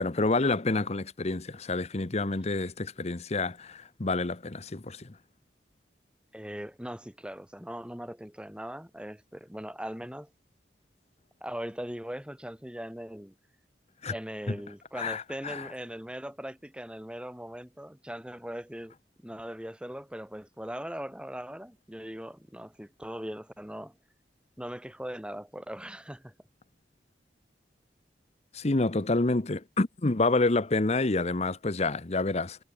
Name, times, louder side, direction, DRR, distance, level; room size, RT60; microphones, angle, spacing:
voice 1, 0.0-5.2 14.0-14.1 15.0-15.7 28.5-32.6, left 2 dB, 40° left, 0.9 m, -28 dB
voice 2, 6.3-10.3 11.4-13.3 14.1-18.9 19.2-24.0 24.6-26.3, equal, 5° right, 2.6 m, -40 dB
head